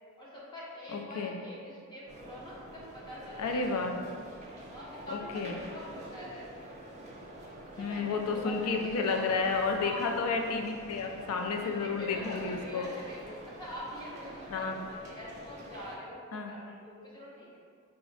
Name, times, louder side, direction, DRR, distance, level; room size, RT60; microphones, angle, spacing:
voice 1, 0.2-3.8 4.7-6.5 7.7-9.3 9.5-10.2 11.6-17.6, left 1 dB, 20° left, -6 dB, 0.6 m, -44 dB
voice 2, 0.9-1.4 3.4-4.0 5.1-5.6 7.8-12.9 14.5-14.8 16.3-16.5, left 4 dB, 85° left, 3 dB, 0.4 m, -31 dB
sound 1, 2.1-16.0, right 1 dB, 30° right, 0.4 m, -48 dB
4.5 x 2.0 x 3.1 m, 2.2 s
head